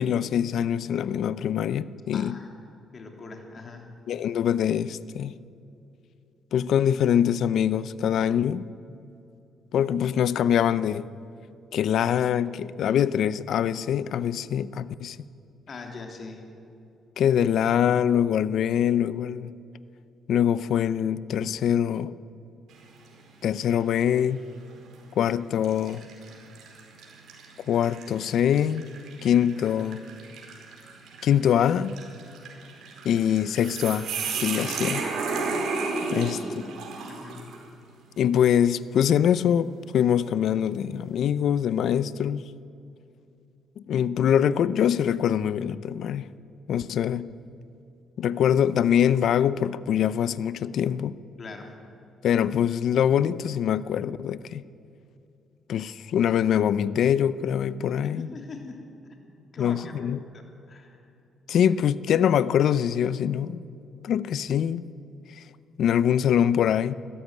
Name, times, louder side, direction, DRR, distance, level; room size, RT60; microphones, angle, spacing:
voice 1, 0.0-2.4 4.1-5.3 6.5-8.6 9.7-11.1 11.7-15.2 17.2-19.6 20.3-22.1 23.4-24.4 25.2-26.0 27.7-28.9 29.2-30.0 31.2-32.0 33.0-34.1 34.4-35.0 36.1-36.4 38.2-42.4 43.8-46.2 46.7-47.3 48.2-51.2 52.2-54.6 55.7-58.3 59.6-60.2 61.5-63.6 64.0-64.8 65.4-65.5 65.8-66.9, left 9 dB, 70° left, 0.7 m, -24 dB
voice 2, 2.1-2.5 2.9-3.9 15.7-16.4 36.0-36.3 37.1-37.5 51.4-51.7 58.0-58.9 59.5-59.9 60.3-61.0, left 4 dB, 40° left, 3.4 m, -41 dB
sound 1, 22.7-23.2 23.7-23.8 24.8-25.0 25.6-37.7, right 4 dB, 80° right, 4.5 m, -34 dB
20.5 x 14.5 x 9.7 m
cardioid pair, 115°, 0 cm